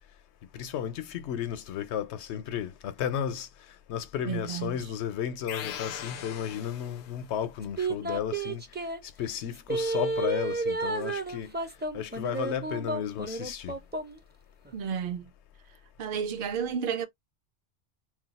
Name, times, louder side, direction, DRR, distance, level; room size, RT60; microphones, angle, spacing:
voice 1, 0.5-3.5 3.9-8.6 9.0-11.6 11.9-13.7, left 9 dB, 85° left, 0.9 m, -33 dB
voice 2, 4.3-4.8 14.7-15.3 16.0-17.1, right 7 dB, 60° right, 0.7 m, -31 dB
sound 1, 5.5-7.4, left 9 dB, 60° left, 0.6 m, -40 dB
sound 2, 7.8-9.0 9.7-14.2 14.6-14.7, right 3 dB, 15° right, 0.4 m, -31 dB
2.3 x 2.3 x 3.9 m
omnidirectional pair, 1.1 m